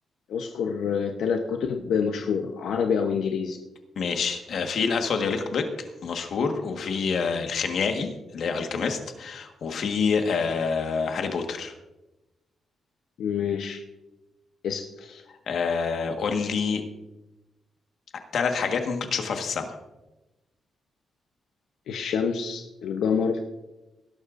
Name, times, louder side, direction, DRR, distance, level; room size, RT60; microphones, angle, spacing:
voice 1, 0.3-3.6 13.2-13.8 14.6-15.2 21.9-23.4, left 6 dB, 85° left, 4 dB, 0.8 m, -27 dB
voice 2, 4.0-5.7 6.0-11.7 15.5-16.8 18.3-19.8, left 5 dB, 60° left, 5 dB, 1.5 m, -27 dB
18.5 x 12.0 x 2.6 m, 1.0 s
wide cardioid pair, 160°, 0 cm